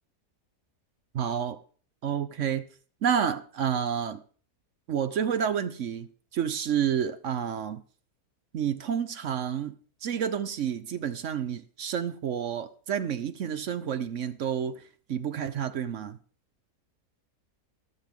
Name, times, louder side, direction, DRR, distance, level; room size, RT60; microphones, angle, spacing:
voice 1, 1.1-1.6 2.0-2.7 3.0-4.2 4.9-7.8 8.5-9.8 10.0-14.8 15.1-16.2, right 8 dB, 60° right, 0.9 m, -29 dB
13.5 x 12.5 x 3.6 m
omnidirectional pair, 1.7 m